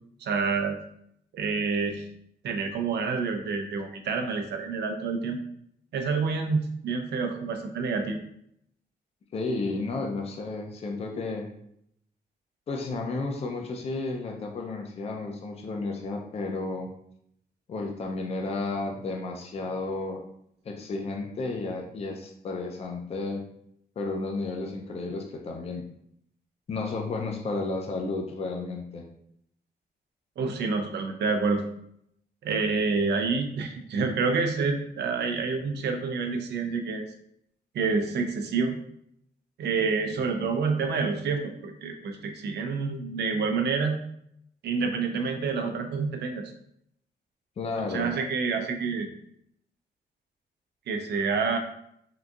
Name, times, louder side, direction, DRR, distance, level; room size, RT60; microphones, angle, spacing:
voice 1, 0.2-0.8 1.3-2.0 2.4-5.4 5.9-8.2 30.4-31.7 32.4-37.0 37.7-38.8 39.6-44.0 44.6-46.5 47.9-49.1 50.9-51.6, right 4 dB, 80° right, 5 dB, 0.5 m, -28 dB
voice 2, 9.3-11.5 12.7-16.9 17.7-20.2 20.6-23.4 24.0-25.9 26.7-29.0 40.3-40.5 47.6-48.1, left 3 dB, 35° left, 1 dB, 0.4 m, -32 dB
3.7 x 2.6 x 2.3 m, 0.72 s
wide cardioid pair, 170°, 17 cm